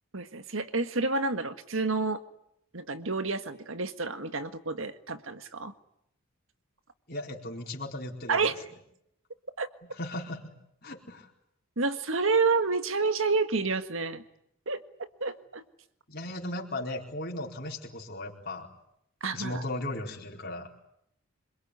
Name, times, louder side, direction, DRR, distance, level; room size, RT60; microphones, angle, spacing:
voice 1, 0.1-2.2 2.7-5.7 8.3-8.6 9.6-9.7 11.8-14.2 14.7-14.8 15.2-15.6 19.2-19.6, right 4 dB, 70° right, 10 dB, 1.7 m, -29 dB
voice 2, 7.1-8.4 9.9-10.5 10.8-11.3 16.1-18.7 19.3-20.7, left 1 dB, 45° left, 0 dB, 4.4 m, -36 dB
27.0 x 22.5 x 9.7 m, 0.75 s
head